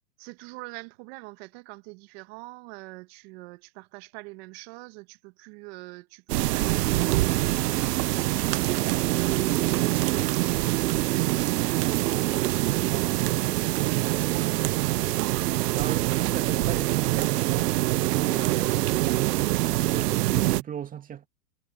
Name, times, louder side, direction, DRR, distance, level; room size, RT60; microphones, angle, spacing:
voice 1, 0.2-15.2, right 26 dB, 40° right, 1.6 m, -46 dB
sound 1, 6.3-20.6, right 17 dB, 75° right, 0.6 m, -25 dB
voice 2, 15.6-17.8 18.1-21.3, right 9 dB, 15° right, 2.3 m, -38 dB
hypercardioid pair, 140°, 49 cm